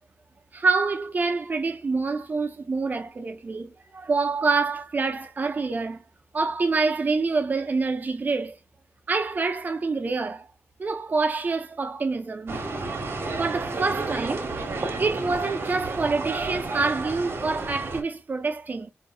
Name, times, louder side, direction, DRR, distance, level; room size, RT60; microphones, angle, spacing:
voice 1, 0.5-6.0 6.3-8.6 9.1-10.5 10.8-12.6 13.4-14.5 15.0-18.9, right 4 dB, 40° right, 0.6 m, -26 dB
sound 1, 12.5-18.0, right 3 dB, 65° right, 1.1 m, -31 dB
4.5 x 2.6 x 2.3 m
wide cardioid pair, 150°, 4 cm